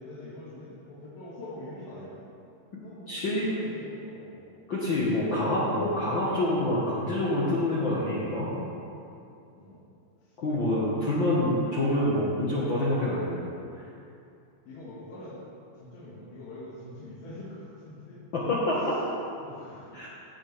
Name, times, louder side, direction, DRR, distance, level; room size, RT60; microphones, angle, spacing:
voice 1, 0.0-2.3 2.7-4.5 5.3-5.5 9.5-9.8 14.7-15.4 15.7-18.2 19.4-20.1, left 1 dB, 80° left, -9 dB, 3.7 m, -44 dB
voice 2, 3.1-3.5 4.7-8.5 10.4-13.4 18.3-18.9 19.9-20.1, left 1 dB, 65° left, -7 dB, 1.2 m, -26 dB
16.5 x 7.2 x 3.4 m, 2.6 s
omnidirectional pair, 4.2 m